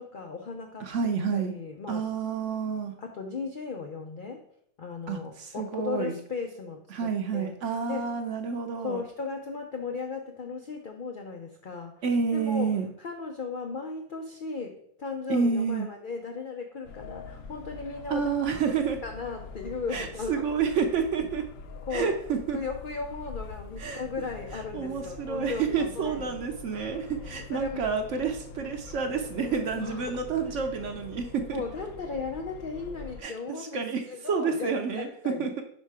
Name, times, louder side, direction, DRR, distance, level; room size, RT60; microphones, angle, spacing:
voice 1, 0.0-0.9 1.3-2.1 3.0-4.4 4.8-7.5 7.9-8.1 8.8-12.0 12.3-12.7 13.0-18.3 19.0-20.5 21.9-22.2 22.5-26.4 27.5-27.9 29.8-30.6 31.5-35.5, left 4 dB, 85° left, 3 dB, 0.4 m, -36 dB
voice 2, 0.8-1.5 1.9-2.9 5.1-6.2 6.9-9.0 12.0-12.9 15.3-15.9 18.1-19.0 19.9-21.4 21.9-22.6 23.8-24.0 24.7-31.6 33.2-33.3 33.6-35.6, right 6 dB, 60° right, 5 dB, 0.8 m, -29 dB
sound 1, 16.8-33.2, left 4 dB, 70° left, 0.8 m, -44 dB
5.5 x 4.3 x 4.7 m, 0.68 s
omnidirectional pair, 1.7 m